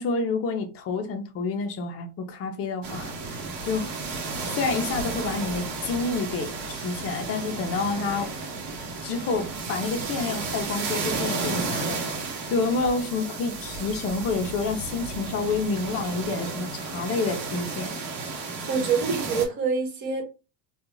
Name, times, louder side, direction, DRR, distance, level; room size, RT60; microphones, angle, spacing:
voice 1, 0.0-3.9 4.5-8.3 9.0-12.0 12.3-18.0, left 4 dB, 30° left, 0.5 m, -29 dB
sound 1, 2.8-19.5, right 4 dB, 85° right, 1.0 m, -33 dB
voice 2, 18.7-20.2, right 5 dB, 45° right, 1.1 m, -26 dB
2.4 x 2.3 x 3.0 m
cardioid pair, 145°, 49 cm